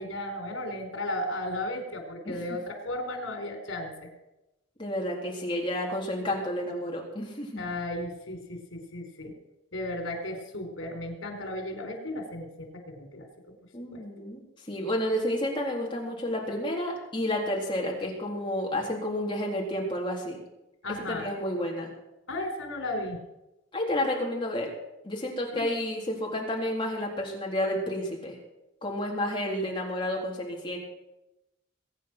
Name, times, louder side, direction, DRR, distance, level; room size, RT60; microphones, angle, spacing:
voice 1, 0.0-3.9 7.6-9.3 9.7-13.3 13.9-14.0 20.8-21.3 22.3-23.2 25.6-25.7, left 1 dB, 85° left, 5 dB, 4.2 m, -35 dB
voice 2, 2.3-2.6 4.8-7.6 13.7-14.4 14.7-20.4 21.1-21.9 23.7-24.7 25.0-28.4 28.8-30.8, left 1 dB, 25° left, -2 dB, 3.8 m, -30 dB
22.0 x 9.6 x 6.2 m, 0.94 s
head